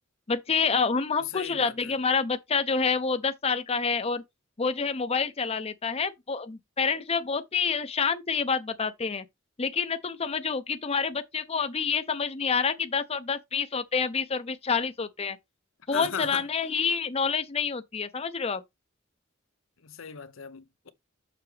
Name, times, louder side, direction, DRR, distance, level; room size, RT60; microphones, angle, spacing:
voice 1, 0.3-4.2 4.6-9.2 9.6-15.4 15.9-18.6, left 5 dB, 30° left, 0.6 m, -28 dB
voice 2, 1.2-2.0 15.9-16.5 19.8-20.9, left 7 dB, 90° left, 0.8 m, -37 dB
6.8 x 6.0 x 3.3 m
head